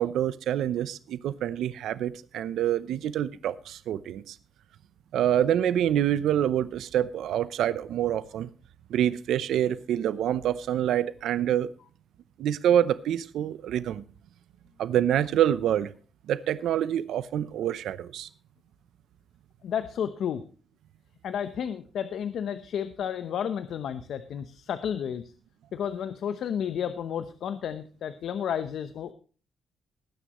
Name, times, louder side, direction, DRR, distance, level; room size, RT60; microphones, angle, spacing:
voice 1, 0.0-4.4 5.1-8.5 8.9-11.7 12.4-14.0 14.8-15.9 16.3-18.3, right 10 dB, 85° right, 0.7 m, -26 dB
voice 2, 19.6-20.4 21.2-25.2 25.7-29.1, left 8 dB, 65° left, 0.8 m, -32 dB
20.0 x 10.0 x 3.1 m
cardioid pair, 140°, 0 cm